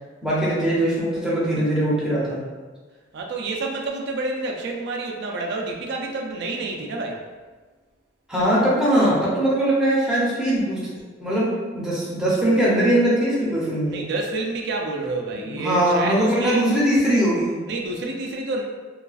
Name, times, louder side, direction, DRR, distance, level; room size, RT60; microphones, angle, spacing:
voice 1, 0.2-2.4 8.3-10.9 11.2-14.0 15.4-17.6, right 1 dB, 5° right, -8 dB, 0.6 m, -21 dB
voice 2, 3.1-7.2 13.9-16.7 17.7-18.6, right 2 dB, 60° right, 0 dB, 0.3 m, -28 dB
2.4 x 2.3 x 2.3 m, 1.4 s
head